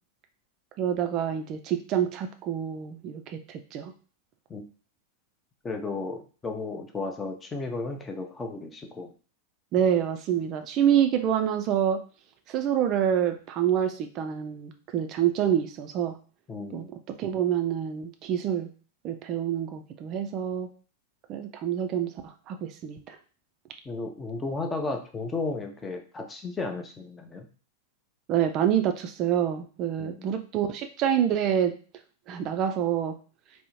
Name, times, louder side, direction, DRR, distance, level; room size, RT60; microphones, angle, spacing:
voice 1, 0.8-3.9 9.7-12.0 12.5-16.2 16.7-18.7 19.0-20.7 21.3-22.1 22.5-23.2 28.3-31.8 32.3-33.1, right 9 dB, 35° right, 7 dB, 0.3 m, -27 dB
voice 2, 5.6-9.1 16.5-16.9 23.9-27.5 30.0-30.3, left 3 dB, 15° left, 4 dB, 0.5 m, -34 dB
3.5 x 2.0 x 2.9 m, 0.39 s
figure-of-eight pair, 90°, 0 cm